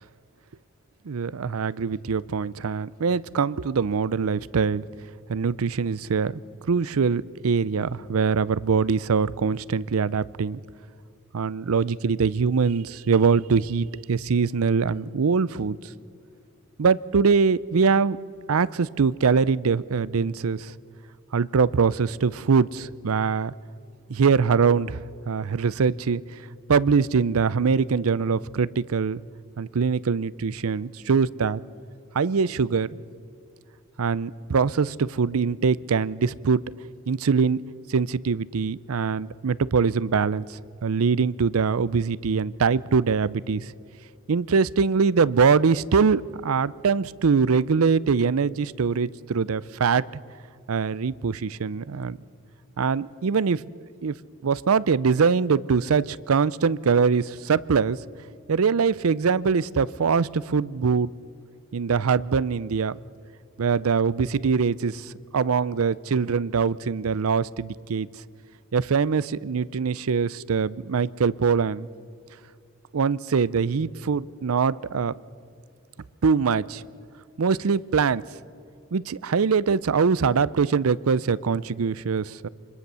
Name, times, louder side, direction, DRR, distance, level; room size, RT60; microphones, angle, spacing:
voice 1, 1.0-4.9 5.3-6.4 6.7-10.6 11.3-15.8 16.8-18.2 18.5-20.7 21.3-23.5 24.1-25.0 25.3-26.2 26.7-29.2 29.6-31.6 32.1-32.9 34.0-36.6 37.1-37.6 37.9-43.7 44.3-50.1 50.7-52.2 52.8-53.6 54.0-54.2 54.4-58.0 58.5-61.1 61.7-63.0 63.6-68.1 68.7-71.9 72.9-75.1 76.2-76.8 77.4-78.2 78.9-82.5, right 5 dB, 90° right, 20 dB, 0.5 m, -23 dB
26.0 x 21.0 x 6.9 m, 2.5 s
head